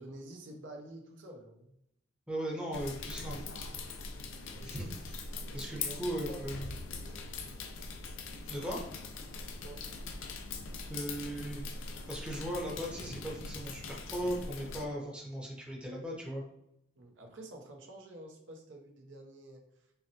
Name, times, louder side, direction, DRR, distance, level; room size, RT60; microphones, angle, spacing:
voice 1, 0.0-1.7 4.6-4.9 5.4-6.4 9.6-9.8 17.0-19.6, right 1 dB, 65° right, 2 dB, 0.7 m, -49 dB
voice 2, 2.3-3.4 4.6-4.9 5.5-6.7 8.5-8.8 10.9-11.6 12.1-16.4, equal, 5° right, -2 dB, 0.8 m, -37 dB
sound 1, 2.7-14.9, left 4 dB, 75° left, 0.5 m, -42 dB
5.5 x 2.1 x 2.8 m, 0.81 s
head